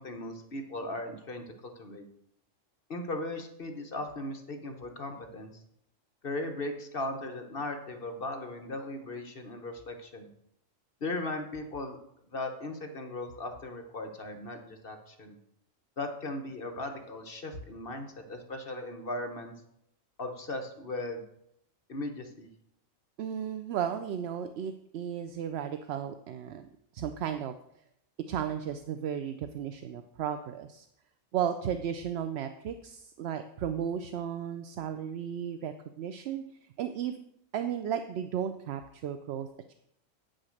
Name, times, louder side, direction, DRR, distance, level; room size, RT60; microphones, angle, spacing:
voice 1, 0.0-2.0 2.9-5.6 6.2-10.3 11.0-12.0 12.3-15.4 16.0-19.5 20.2-21.2 21.9-22.5, left 2 dB, 50° left, 5 dB, 1.2 m, -37 dB
voice 2, 23.2-26.7 26.9-27.5 28.3-30.9 31.3-36.4 36.8-37.2 37.5-39.5, right 9 dB, 65° right, 8 dB, 0.7 m, -34 dB
8.7 x 6.4 x 6.4 m, 0.76 s
omnidirectional pair, 1.4 m